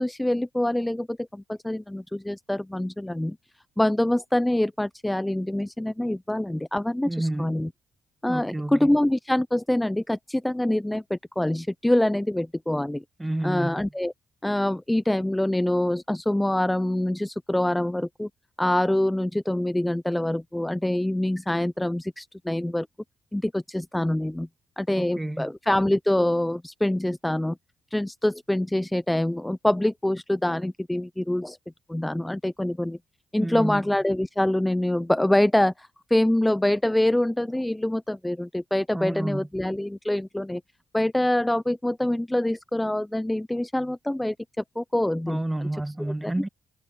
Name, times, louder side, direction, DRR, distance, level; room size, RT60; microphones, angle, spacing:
voice 1, 0.0-3.4 3.8-7.7 8.2-13.0 13.4-14.1 14.4-18.3 18.6-22.9 23.3-24.5 24.8-27.6 27.9-31.6 31.9-33.0 33.3-40.6 40.9-45.4 46.2-46.3, left 1 dB, 5° left, 0.5 m, -25 dB
voice 2, 7.1-7.5 8.3-8.9 13.2-13.8 25.0-25.5 33.4-33.9 38.9-39.5 45.3-46.5, right 1 dB, 10° right, 1.3 m, -30 dB
cardioid pair, 90°, 0 cm